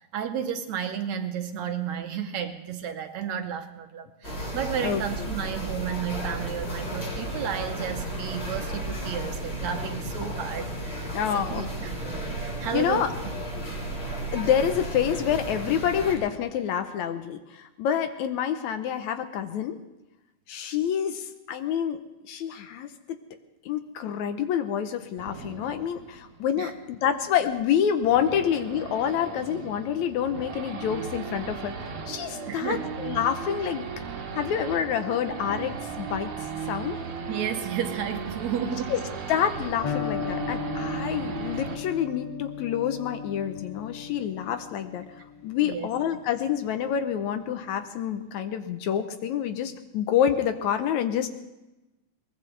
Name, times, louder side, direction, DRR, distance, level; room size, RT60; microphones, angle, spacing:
voice 1, 0.1-11.9 12.3-13.1 26.6-26.7 32.5-32.9 37.3-38.9 45.6-45.9, right 8 dB, 70° right, 6 dB, 2.1 m, -32 dB
sound 1, 4.2-16.1, right 1 dB, 30° left, 4.7 m, -33 dB
voice 2, 11.1-11.7 12.7-13.1 14.3-19.8 20.5-22.0 22.3-23.2 23.7-33.9 34.3-36.3 36.7-37.0 38.9-39.0 39.3-45.0 45.4-51.3, left 9 dB, 75° left, 9 dB, 2.0 m, -27 dB
Race car auto racing / Idling / Accelerating revving vroom, 25.2-41.8, right 6 dB, 50° right, 2.0 m, -36 dB
Electric guitar, 39.8-47.7, left 7 dB, 45° left, 4.3 m, -37 dB
22.5 x 19.5 x 3.3 m, 1.0 s
omnidirectional pair, 3.6 m